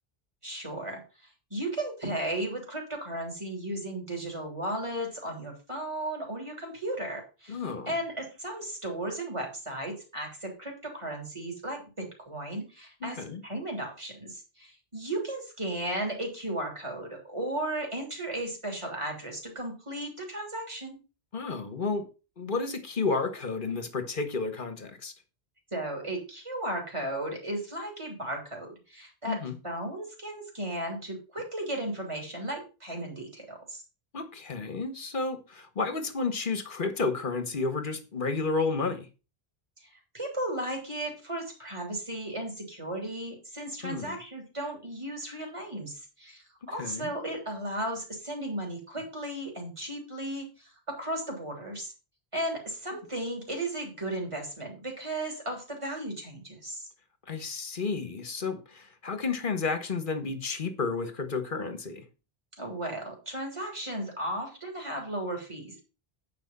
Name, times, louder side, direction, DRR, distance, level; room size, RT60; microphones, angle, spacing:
voice 1, 0.4-7.6 7.9-21.0 25.7-29.4 29.6-33.8 39.8-51.9 52.3-56.9 62.6-65.8, right 1 dB, 30° right, 3.3 m, -35 dB
voice 2, 7.5-7.9 13.0-13.4 21.3-22.1 22.4-25.1 29.3-29.5 34.1-39.1 43.8-44.2 46.6-47.1 57.3-62.1, left 4 dB, 55° left, 1.4 m, -31 dB
9.1 x 5.2 x 5.4 m
omnidirectional pair, 1.1 m